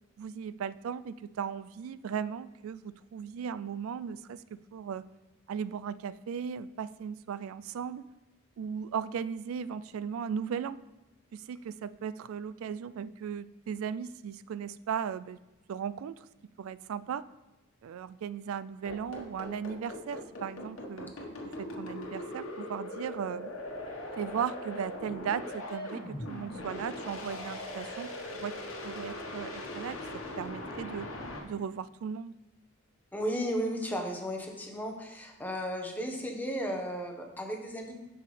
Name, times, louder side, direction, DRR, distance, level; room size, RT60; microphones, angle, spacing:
voice 1, 0.2-5.1 5.5-8.1 8.6-10.8 11.3-15.4 15.7-16.2 16.6-17.3 17.8-21.1 21.6-23.5 24.1-28.6 28.8-30.0 30.4-31.1 31.4-32.4, right 7 dB, 75° right, 16 dB, 0.3 m, -37 dB
sound 1, 18.8-31.4, left 1 dB, 80° left, 1.3 m, -40 dB
voice 2, 33.1-38.0, equal, 10° left, 2 dB, 0.9 m, -34 dB
10.5 x 5.7 x 3.3 m, 1.0 s
head